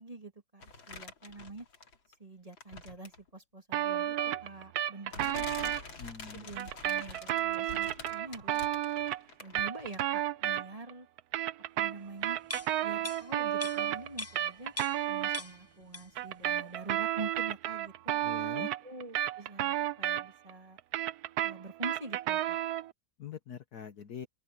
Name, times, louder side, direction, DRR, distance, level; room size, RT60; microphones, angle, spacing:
voice 1, 0.0-1.7 2.2-4.1 4.4-5.7 6.3-8.6 9.4-11.1 11.8-12.4 12.8-14.7 15.1-18.1 18.6-20.8 21.4-22.6, right 2 dB, 20° right, 2.6 m, -45 dB
sound 1, 0.6-2.1 2.5-3.3 4.3-4.4 5.1-10.2 10.5-10.6, left 4 dB, 85° left, 3.9 m, -47 dB
sound 2, 3.7-5.8 6.6-10.9 11.2-15.4 16.2-20.5 20.8-22.9, right 12 dB, 65° right, 1.0 m, -32 dB
voice 2, 6.0-6.5 7.3-7.5 18.2-18.7 23.2-24.3, left 7 dB, 60° left, 1.5 m, -44 dB
sound 3, 12.4-15.1 15.3-16.3 16.6-16.8, left 2 dB, 15° left, 0.5 m, -42 dB
open air
omnidirectional pair, 2.1 m